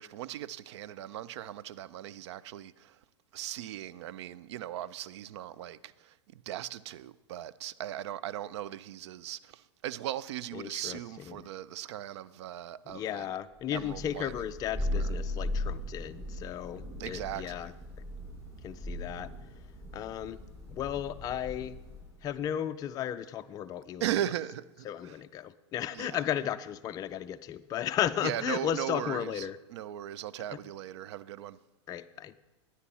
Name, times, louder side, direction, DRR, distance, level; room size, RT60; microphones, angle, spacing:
voice 1, 0.0-3.0 3.3-13.3 13.7-14.4 14.9-15.1 17.0-17.8 24.0-25.2 25.9-26.2 28.2-31.6, right 12 dB, 70° right, 0.5 m, -38 dB
voice 2, 10.5-11.0 11.3-11.4 12.9-17.7 18.6-19.3 19.9-20.4 20.7-21.8 22.2-24.0 24.9-29.6 31.9-32.3, left 10 dB, 25° left, 0.3 m, -34 dB
Thunder, 13.7-22.2, left 1 dB, 20° right, 4.3 m, -38 dB
11.5 x 9.4 x 4.2 m
hypercardioid pair, 115°, 15 cm